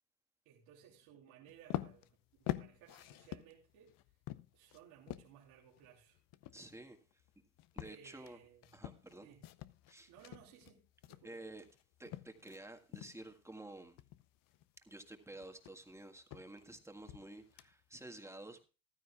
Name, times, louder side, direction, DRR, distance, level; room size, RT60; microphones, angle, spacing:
voice 1, 0.4-3.9 4.5-6.2 7.8-8.8 9.2-9.4 10.1-11.4, right 9 dB, 75° right, 3.1 m, -60 dB
sound 1, 1.5-12.6 12.9-13.4 13.7-18.0, left 15 dB, 55° left, 0.8 m, -47 dB
voice 2, 6.5-7.0 7.7-8.4 8.7-9.3 9.9-10.1 11.2-11.6 12.0-14.0 14.8-18.7, right 2 dB, 5° right, 1.7 m, -51 dB
15.0 x 12.5 x 2.4 m
supercardioid pair, 90°, 42 cm